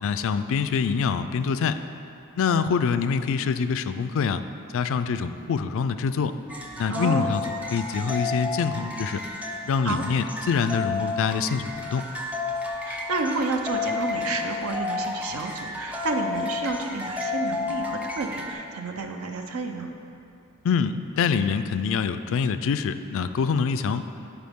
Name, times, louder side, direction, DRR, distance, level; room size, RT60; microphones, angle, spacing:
voice 1, 0.0-1.8 2.4-4.4 4.7-6.4 6.8-7.4 7.7-9.2 9.6-12.1 20.6-24.0, left 6 dB, 65° left, 11 dB, 0.4 m, -25 dB
sound 1, 6.5-18.5, left 3 dB, 5° right, 0.5 m, -31 dB
voice 2, 6.9-7.3 9.8-10.0 12.8-19.9, right 3 dB, 75° right, 4 dB, 0.7 m, -30 dB
11.5 x 4.9 x 3.6 m, 2.6 s
head